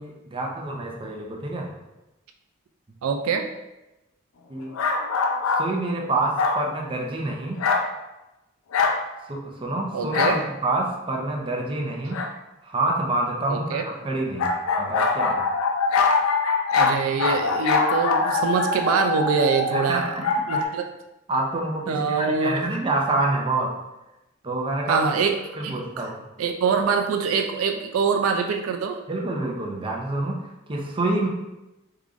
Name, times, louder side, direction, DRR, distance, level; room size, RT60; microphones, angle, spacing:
voice 1, 0.0-1.7 4.5-4.7 5.6-7.6 9.3-12.2 12.6-15.4 19.7-20.2 20.5-20.8 21.3-23.7 24.4-25.0 25.6-26.3 29.1-30.4 30.7-31.3, right 2 dB, 25° right, -1 dB, 0.5 m, -27 dB
voice 2, 3.0-3.5 9.9-10.4 13.5-13.8 16.7-20.1 20.5-20.9 21.9-22.6 24.9-25.4 25.6-26.1 26.4-29.0, right 5 dB, 85° right, 5 dB, 0.3 m, -24 dB
sound 1, 4.7-5.7 6.4-6.7 7.6-7.9 8.7-9.0 10.1-10.4 12.1-12.3 14.4-20.6, left 4 dB, 80° left, 0.4 m, -23 dB
3.6 x 3.0 x 2.4 m, 0.96 s
head